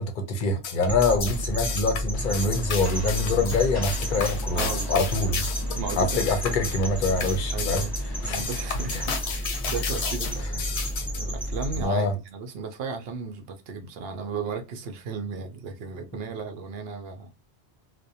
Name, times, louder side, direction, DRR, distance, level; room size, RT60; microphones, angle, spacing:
voice 1, 0.0-5.4 6.0-7.8 8.2-8.4 11.8-12.1, left 3 dB, 55° left, 0.7 m, -25 dB
sound 1, 0.6-11.2, left 5 dB, 90° left, 0.9 m, -33 dB
sound 2, 0.8-11.8, equal, 5° left, 0.5 m, -31 dB
Rain, 2.1-9.4, left 1 dB, 20° left, 0.9 m, -44 dB
voice 2, 4.5-5.0 5.8-6.3 7.5-8.0 8.2-10.8 11.2-17.3, right 5 dB, 70° right, 0.8 m, -35 dB
2.5 x 2.1 x 2.6 m
omnidirectional pair, 1.1 m